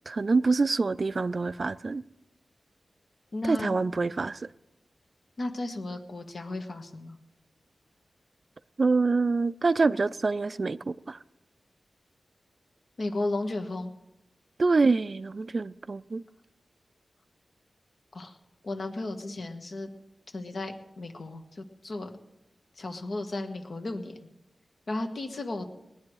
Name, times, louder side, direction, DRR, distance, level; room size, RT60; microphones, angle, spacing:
voice 1, 0.1-2.0 3.5-4.5 8.8-11.2 14.6-16.2, right 3 dB, 45° right, 0.4 m, -26 dB
voice 2, 3.3-3.7 5.4-7.2 13.0-13.9 18.1-18.4 18.6-19.9 20.3-22.1 22.8-24.1 24.9-25.6, left 2 dB, 55° left, 1.6 m, -34 dB
20.0 x 10.5 x 4.8 m
wide cardioid pair, 95°, 0 cm